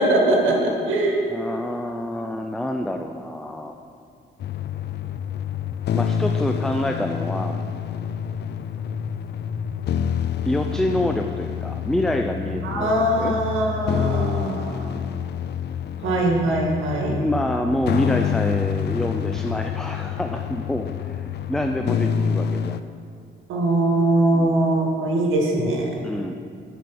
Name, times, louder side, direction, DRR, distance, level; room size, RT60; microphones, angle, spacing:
voice 1, 0.0-1.3 12.6-15.0 16.0-17.2 23.5-25.9, right 1 dB, 80° right, -1 dB, 2.0 m, -21 dB
voice 2, 1.3-3.7 5.9-7.6 10.5-13.3 17.2-22.8 24.3-24.7 26.0-26.3, left 1 dB, ahead, 4 dB, 0.4 m, -27 dB
sound 1, 4.4-22.8, left 8 dB, 60° left, 0.4 m, -27 dB
11.0 x 5.2 x 6.0 m, 2.3 s
cardioid pair, 90°, 20 cm